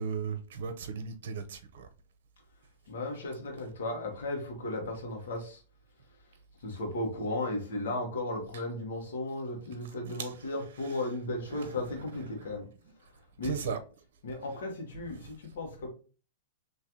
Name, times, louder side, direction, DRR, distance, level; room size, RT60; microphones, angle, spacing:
voice 1, 0.0-1.9 11.6-11.7 13.5-13.8, right 6 dB, 70° right, 0.7 m, -35 dB
voice 2, 2.9-5.6 6.2-6.3 6.6-12.7 13.0-13.8 14.2-15.9, left 2 dB, 75° left, 1.5 m, -35 dB
3.1 x 3.0 x 3.7 m
hypercardioid pair, 120°, 0 cm